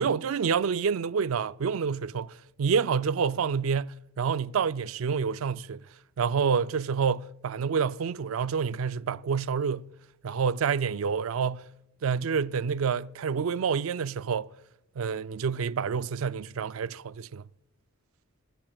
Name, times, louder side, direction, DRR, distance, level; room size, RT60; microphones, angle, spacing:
voice 1, 0.0-5.8 6.2-9.9 10.2-11.7 12.0-14.5 15.0-17.5, right 6 dB, 65° right, 0.4 m, -28 dB
26.0 x 15.0 x 2.3 m
head